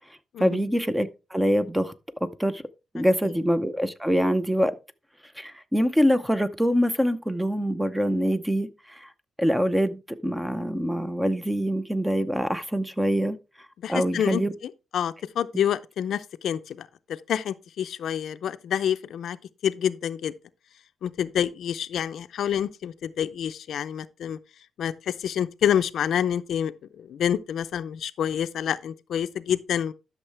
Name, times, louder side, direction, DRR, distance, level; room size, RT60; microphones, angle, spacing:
voice 1, 0.4-1.9 2.2-2.6 2.9-4.7 5.4-9.1 9.4-13.4 13.9-14.5, equal, 5° right, 0.7 m, -24 dB
voice 2, 13.8-16.9 17.3-19.4 19.6-20.3 21.0-24.4 24.8-29.9, left 9 dB, 75° left, 0.5 m, -28 dB
12.0 x 6.4 x 3.3 m
cardioid pair, 125°, 0 cm